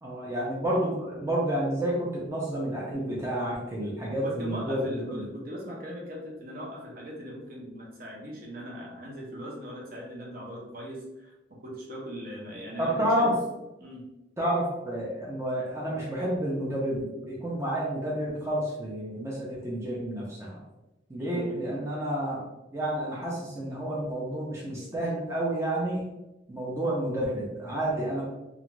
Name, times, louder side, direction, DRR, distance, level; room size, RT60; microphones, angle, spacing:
voice 1, 0.0-5.2 12.8-13.3 14.4-20.5 21.1-22.4 22.7-26.0 26.5-28.2, right 1 dB, 15° right, -5 dB, 0.5 m, -30 dB
voice 2, 4.2-11.3 11.6-13.4 13.8-14.1 21.2-21.6, equal, 50° right, -3 dB, 0.7 m, -40 dB
2.5 x 2.3 x 3.0 m, 0.97 s
head